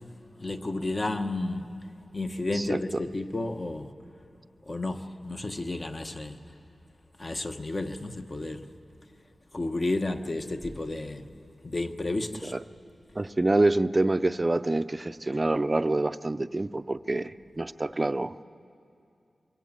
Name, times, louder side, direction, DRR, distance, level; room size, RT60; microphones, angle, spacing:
voice 1, 0.4-1.7 2.1-3.9 4.7-6.4 7.2-8.6 9.5-11.3 11.6-12.5, left 2 dB, 35° left, 6 dB, 1.1 m, -31 dB
voice 2, 2.5-3.0 12.4-12.6 13.2-18.3, right 2 dB, 25° right, 13 dB, 0.5 m, -26 dB
24.0 x 22.5 x 7.5 m, 2.5 s
wide cardioid pair, 85°, 0 cm